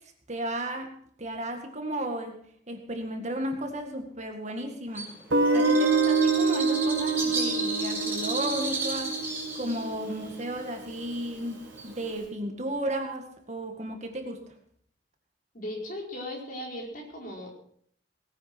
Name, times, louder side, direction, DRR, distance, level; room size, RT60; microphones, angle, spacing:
voice 1, 0.3-0.9 1.2-2.4 2.7-5.1 5.5-14.4, right 1 dB, 40° right, 4 dB, 2.0 m, -34 dB
Bird, 4.9-12.2, right 2 dB, 10° right, 5.7 m, -34 dB
Guitar, 5.3-10.2, right 4 dB, 90° right, 1.6 m, -26 dB
voice 2, 15.5-17.5, left 1 dB, 45° left, -1 dB, 4.7 m, -37 dB
19.0 x 9.7 x 6.1 m, 0.63 s
head